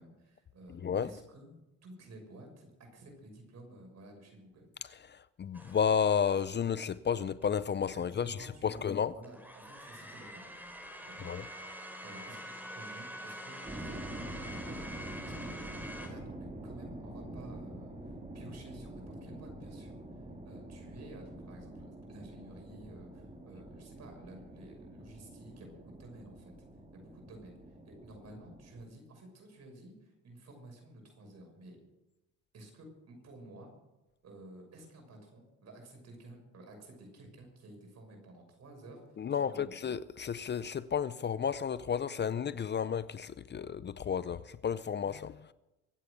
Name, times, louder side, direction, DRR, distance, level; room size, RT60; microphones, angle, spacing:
voice 1, 0.0-1.5 1.8-4.7 8.1-10.5 11.0-11.3 11.6-14.8 15.4-26.5 26.9-31.8 32.5-33.7 34.2-39.8, right 1 dB, 60° right, 6.3 m, -52 dB
voice 2, 5.1-9.1 11.2-11.4 39.2-45.5, left 7 dB, 35° left, 0.6 m, -32 dB
sound 1, 5.5-6.3 7.4-7.5 9.2-16.1, equal, 5° right, 5.0 m, -46 dB
sound 2, 13.6-28.8, right 1 dB, 25° right, 3.2 m, -46 dB
23.5 x 8.4 x 6.7 m
cardioid pair, 90°, 30 cm